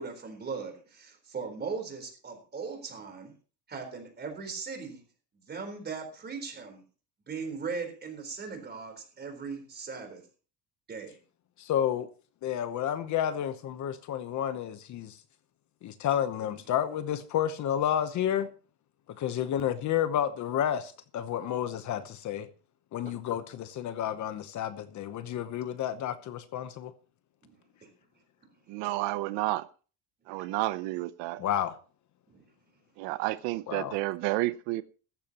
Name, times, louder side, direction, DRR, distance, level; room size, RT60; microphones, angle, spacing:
voice 1, 0.0-3.3 3.7-5.0 5.5-6.8 7.3-10.2 10.9-11.2 23.1-23.2 27.4-27.5 27.8-27.9 32.3-32.4, right 5 dB, 25° right, 4.1 m, -39 dB
voice 2, 11.6-12.1 12.4-15.2 15.8-18.5 19.2-22.5 22.9-26.9 31.4-31.8 33.7-33.9, left 10 dB, 40° left, 0.9 m, -30 dB
voice 3, 28.7-29.7 30.3-31.4 33.0-34.8, right 18 dB, 80° right, 0.8 m, -30 dB
15.5 x 14.5 x 3.0 m
cardioid pair, 165°, 42 cm